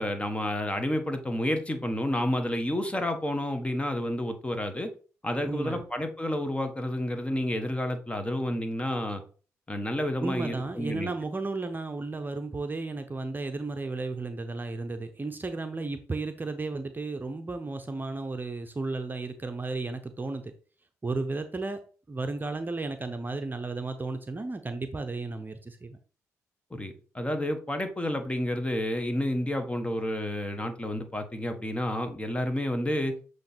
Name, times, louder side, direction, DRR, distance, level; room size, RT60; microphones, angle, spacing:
voice 1, 0.0-4.9 5.2-9.2 9.7-11.1 26.7-33.1, left 1 dB, 15° left, 7 dB, 1.5 m, -30 dB
voice 2, 5.5-5.9 10.2-20.5 21.0-21.8 22.1-26.0, right 3 dB, 30° right, 7 dB, 0.8 m, -34 dB
7.5 x 3.2 x 4.4 m, 0.39 s
hypercardioid pair, 45°, 7 cm